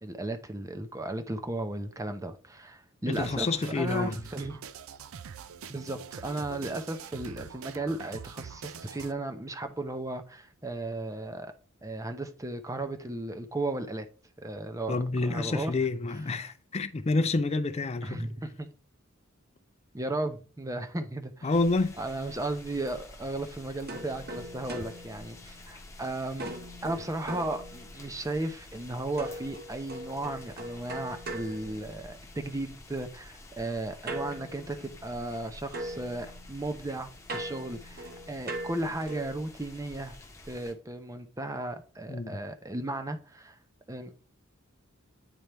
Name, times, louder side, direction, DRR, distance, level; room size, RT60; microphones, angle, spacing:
voice 1, 0.0-4.6 5.7-11.5 11.8-14.1 14.4-15.7 16.3-16.5 18.0-18.7 19.9-21.5 22.0-26.5 26.8-40.2 40.5-43.6 43.9-44.1, right 2 dB, 15° right, 0.7 m, -35 dB
voice 2, 3.1-4.2 14.9-18.3 21.4-22.0 42.1-42.4, left 3 dB, 30° left, 0.5 m, -28 dB
sound 1, 3.1-9.1, right 7 dB, 75° right, 0.5 m, -44 dB
sound 2, 21.5-40.7, left 2 dB, 15° left, 0.9 m, -50 dB
sound 3, 23.9-26.0 26.4-28.2 29.2-32.4 34.1-35.4 35.7-39.4, right 1 dB, 45° right, 1.1 m, -41 dB
9.2 x 4.3 x 3.4 m
head